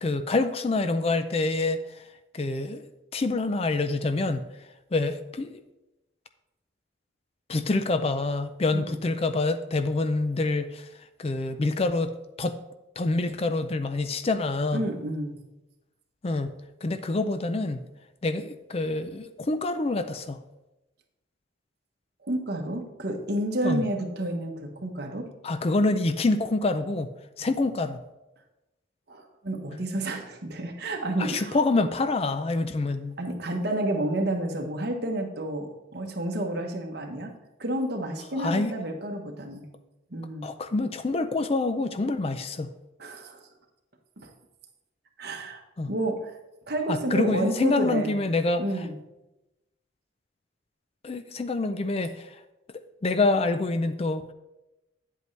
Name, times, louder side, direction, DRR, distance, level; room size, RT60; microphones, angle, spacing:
voice 1, 0.0-1.8 2.3-2.8 3.1-4.5 4.9-5.6 7.5-10.9 11.2-12.1 12.4-12.6 13.0-14.8 16.2-17.8 18.2-20.4 23.6-23.9 25.4-27.1 27.4-28.0 31.2-33.2 38.3-38.7 40.4-42.7 45.8-45.9 46.9-48.6 51.0-52.3 53.0-54.2, left 2 dB, 30° left, 10 dB, 0.4 m, -26 dB
voice 2, 14.7-15.4 22.2-25.3 29.1-31.6 33.2-37.3 37.6-39.7 40.1-40.5 43.0-43.4 44.2-44.3 45.2-45.6 45.9-46.3 46.7-48.2 48.6-48.9, right 1 dB, 55° right, 3 dB, 1.2 m, -30 dB
9.4 x 8.1 x 3.3 m, 0.97 s
head